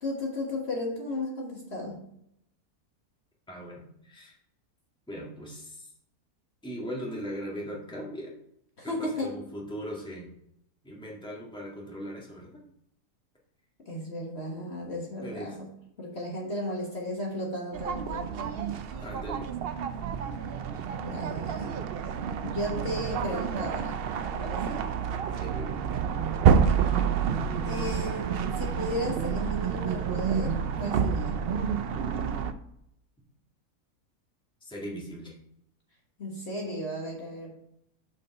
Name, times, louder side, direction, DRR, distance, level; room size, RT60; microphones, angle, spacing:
voice 1, 0.0-2.0 8.8-9.3 13.8-15.7 16.0-18.6 21.0-21.8 22.4-24.0 24.3-24.8 26.6-26.8 27.6-31.4 36.2-37.5, left 1 dB, 45° left, -1 dB, 1.6 m, -35 dB
voice 2, 3.5-4.3 5.1-5.9 6.6-8.3 8.8-10.3 10.8-12.6 15.2-15.6 19.0-19.4 25.4-25.8 34.6-35.4, equal, 5° left, -3 dB, 1.6 m, -39 dB
sound 1, 17.7-32.5, right 7 dB, 70° right, 0.5 m, -28 dB
6.8 x 5.0 x 5.4 m, 0.75 s
omnidirectional pair, 1.6 m